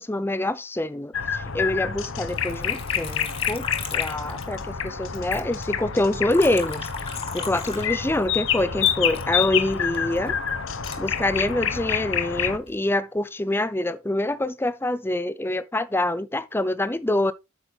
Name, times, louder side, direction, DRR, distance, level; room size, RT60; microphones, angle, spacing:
voice 1, 0.0-6.9 7.3-10.4 11.0-17.3, left 1 dB, 10° left, 0.5 m, -26 dB
sound 1, 1.1-12.6, left 8 dB, 70° left, 1.0 m, -28 dB
Liquid, 2.3-4.9 5.1-8.3 8.8-11.8 12.4-12.9, left 5 dB, 25° left, 1.6 m, -38 dB
8.9 x 6.4 x 3.4 m
head